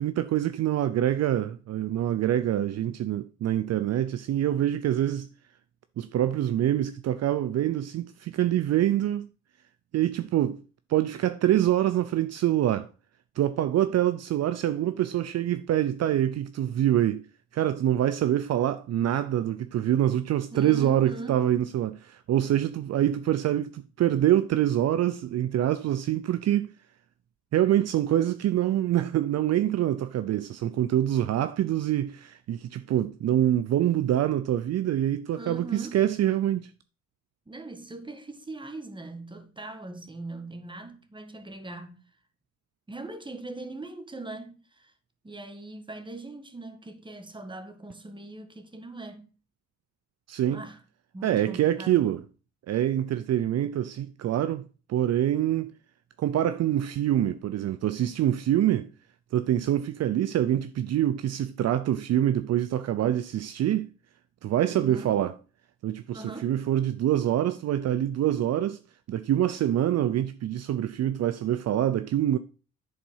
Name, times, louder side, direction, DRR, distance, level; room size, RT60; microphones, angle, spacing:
voice 1, 0.0-5.3 6.0-9.3 9.9-10.6 10.9-12.9 13.4-17.2 17.5-26.7 27.5-36.7 50.3-50.7 51.2-52.2 52.7-54.6 54.9-55.7 56.2-58.9 59.3-63.9 64.4-65.3 65.8-68.8 69.1-72.4, right 12 dB, 55° right, 0.5 m, -25 dB
voice 2, 20.5-21.4 35.4-36.0 37.5-42.0 42.9-44.9 45.2-49.3 50.5-50.8 51.1-52.1 64.7-65.2 66.1-66.6, right 2 dB, 15° right, 1.7 m, -40 dB
10.5 x 4.2 x 5.5 m
cardioid pair, 90°, 30 cm